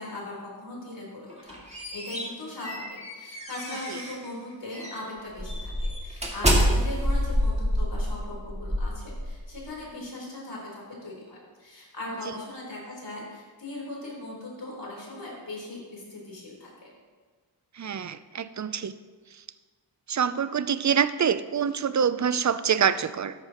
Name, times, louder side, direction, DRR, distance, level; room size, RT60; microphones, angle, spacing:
voice 1, 0.0-2.8 3.1-16.9, left 2 dB, 80° left, -4 dB, 3.8 m, -39 dB
sound 1, 1.3-4.2 4.7-5.0 5.4-9.6, equal, 15° right, 2.1 m, -27 dB
voice 2, 17.8-18.9 20.1-23.3, right 7 dB, 40° right, 14 dB, 0.5 m, -25 dB
13.5 x 10.5 x 3.0 m, 1.5 s
wide cardioid pair, 75°, 43 cm